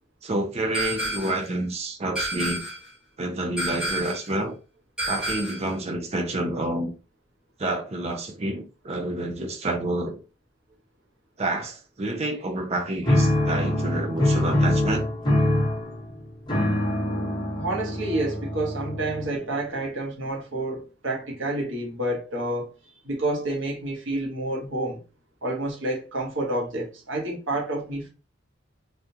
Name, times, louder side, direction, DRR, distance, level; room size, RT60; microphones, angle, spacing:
voice 1, 0.2-2.6 3.2-4.6 5.1-6.9 7.6-10.2 11.4-15.1, right 1 dB, 30° right, 0.5 m, -28 dB
sound 1, 0.7-1.5 2.2-2.9 3.6-4.3 5.0-5.7, right 1 dB, 5° right, 1.1 m, -30 dB
sound 2, 13.0-19.5, left 1 dB, 25° left, 0.9 m, -24 dB
voice 2, 17.6-25.0 25.4-28.1, right 1 dB, 70° right, 1.1 m, -29 dB
3.5 x 2.4 x 2.8 m
head